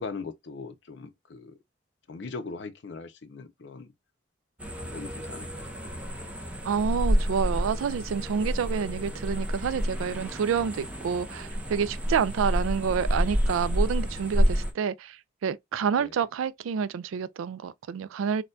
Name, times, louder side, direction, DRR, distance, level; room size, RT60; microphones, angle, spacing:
voice 1, 0.0-1.5 2.1-3.9 4.8-6.0 16.0-16.2, left 4 dB, 60° left, 0.5 m, -40 dB
sound 1, 4.6-14.7, equal, 5° right, 0.5 m, -29 dB
voice 2, 6.6-18.4, right 7 dB, 80° right, 0.3 m, -28 dB
4.3 x 2.2 x 2.5 m
head